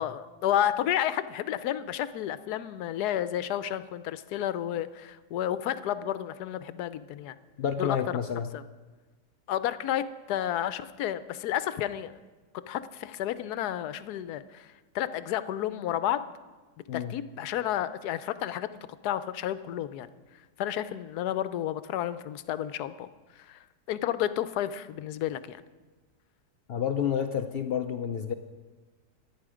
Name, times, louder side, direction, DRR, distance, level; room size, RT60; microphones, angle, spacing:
voice 1, 0.0-7.4 7.8-8.0 8.5-8.6 9.5-12.1 12.7-14.7 14.9-16.2 16.9-18.7 19.0-20.1 20.6-23.1 23.4-23.6 23.9-25.6, left 11 dB, 75° left, 13 dB, 1.2 m, -31 dB
voice 2, 7.6-8.5 16.9-17.2 26.7-28.3, left 8 dB, 90° left, 8 dB, 0.5 m, -29 dB
25.0 x 9.1 x 5.0 m, 1.3 s
omnidirectional pair, 1.8 m